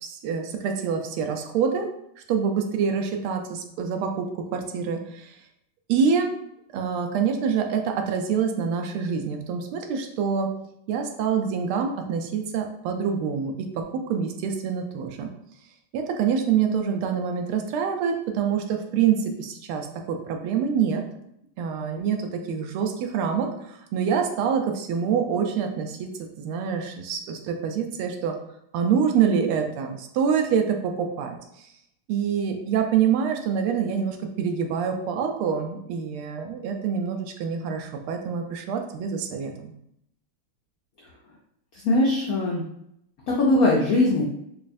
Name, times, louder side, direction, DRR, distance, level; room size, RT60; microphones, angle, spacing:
voice 1, 0.0-1.9 2.3-4.3 4.5-5.4 5.9-6.3 6.7-10.5 10.9-15.3 15.9-21.0 21.6-26.1 26.4-28.3 28.7-31.4 32.1-39.7, right 7 dB, 85° right, 4 dB, 1.5 m, -26 dB
voice 2, 41.7-42.6 43.3-44.2, left 2 dB, 80° left, -3 dB, 0.8 m, -21 dB
5.2 x 2.4 x 2.5 m, 0.76 s
omnidirectional pair, 2.3 m